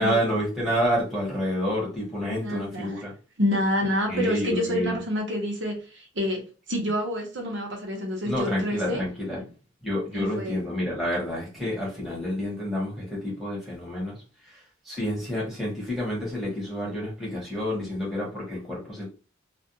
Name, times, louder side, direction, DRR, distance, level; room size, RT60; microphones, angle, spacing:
voice 1, 0.0-3.1 4.1-5.0 8.2-9.4 9.8-14.2 14.8-19.1, equal, ahead, 1.1 m, -29 dB
voice 2, 2.2-3.0 3.4-9.0 10.1-10.6, equal, 80° right, 0.8 m, -28 dB
2.4 x 2.2 x 2.7 m
head